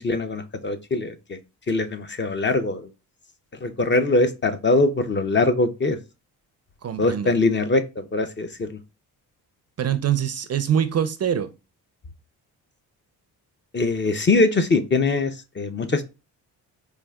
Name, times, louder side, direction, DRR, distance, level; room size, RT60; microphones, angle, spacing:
voice 1, 0.0-1.4 1.7-2.9 3.6-6.0 7.0-8.8 13.7-16.0, left 3 dB, 30° left, 0.4 m, -22 dB
voice 2, 6.8-7.3 9.8-11.5, right 9 dB, 40° right, 0.4 m, -24 dB
4.7 x 2.4 x 2.2 m
supercardioid pair, 65°, 41 cm